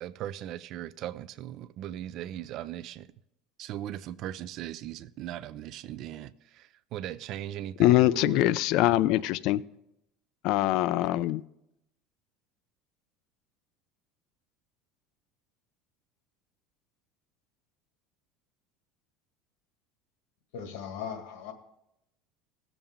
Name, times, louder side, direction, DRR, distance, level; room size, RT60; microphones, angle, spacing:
voice 1, 0.0-3.1 3.6-8.4, right 12 dB, 40° right, 0.4 m, -38 dB
voice 2, 7.8-9.6 10.4-11.4, left 15 dB, 50° left, 0.4 m, -23 dB
voice 3, 20.5-21.5, left 7 dB, 85° left, 1.8 m, -38 dB
18.0 x 7.1 x 3.6 m
cardioid pair, 175°, 0 cm